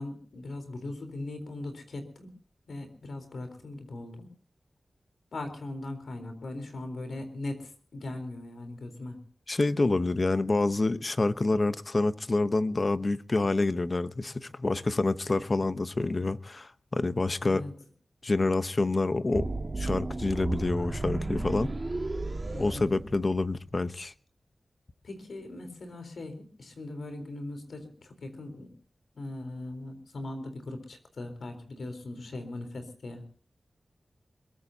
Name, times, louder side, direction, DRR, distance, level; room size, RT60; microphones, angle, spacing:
voice 1, 0.0-2.3 2.7-4.3 5.3-9.2 17.4-17.7 22.5-23.0 25.0-28.7 29.2-33.2, left 2 dB, 85° left, 3.9 m, -39 dB
voice 2, 9.5-17.6 18.2-19.5 19.8-21.7 22.6-24.1, left 2 dB, 40° left, 0.9 m, -27 dB
sound 1, 19.3-23.6, right 2 dB, 35° right, 2.2 m, -33 dB
22.0 x 21.5 x 2.8 m
wide cardioid pair, 75°, 0 cm